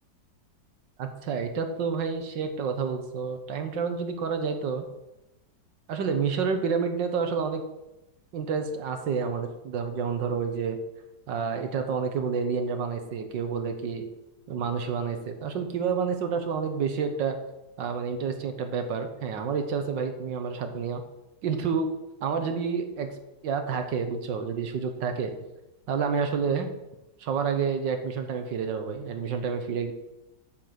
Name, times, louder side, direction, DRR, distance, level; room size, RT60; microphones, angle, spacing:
voice 1, 1.0-4.9 5.9-7.6 8.3-10.8 11.3-14.0 14.5-17.4 17.8-21.0 21.4-21.9 22.2-23.1 23.4-25.3 25.9-26.7 27.2-29.9, right 6 dB, 90° right, 6 dB, 1.8 m, -29 dB
8.7 x 6.1 x 7.9 m, 0.93 s
omnidirectional pair, 1.9 m